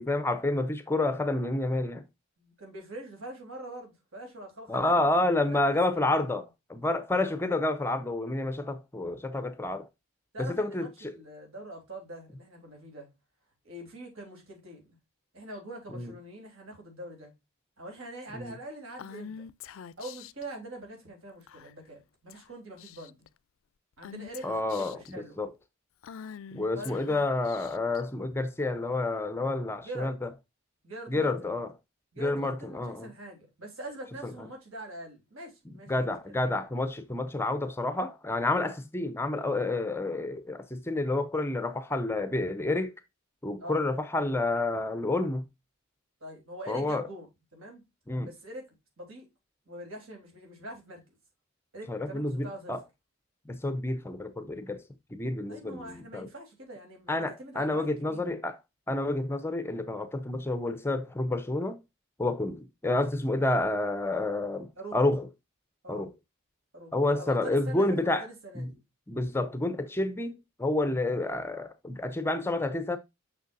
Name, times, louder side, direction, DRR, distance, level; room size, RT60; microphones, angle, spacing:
voice 1, 0.0-2.0 4.7-9.9 10.4-11.1 15.9-16.1 18.3-18.5 24.4-25.5 26.5-30.3 31.1-31.7 32.2-33.1 35.7-42.9 43.4-45.5 46.7-47.1 48.1-48.3 51.9-52.8 53.5-54.8 55.1-56.3 57.1-58.6 58.9-61.8 62.2-65.3 65.9-66.1 66.9-68.3 68.5-68.7 69.1-73.0, left 2 dB, 10° left, 0.5 m, -29 dB
voice 2, 2.4-5.1 5.5-6.4 10.3-13.1 13.6-15.0 15.3-17.3 17.8-19.4 20.0-23.3 24.0-25.4 26.7-27.0 29.8-30.1 30.8-31.3 32.1-36.2 43.6-43.8 46.2-47.3 47.5-47.8 48.2-48.7 49.0-49.3 49.6-51.0 51.7-52.8 55.5-58.4 64.8-65.0 65.8-66.1 66.7-68.8, right 1 dB, 75° right, 3.4 m, -43 dB
Female speech woman speaking / Whispering, 19.0-20.4 21.5-21.9 22.3-22.5 22.8-23.3 24.0-25.1 26.0-28.0, left 8 dB, 70° left, 0.4 m, -45 dB
6.5 x 6.1 x 2.5 m
head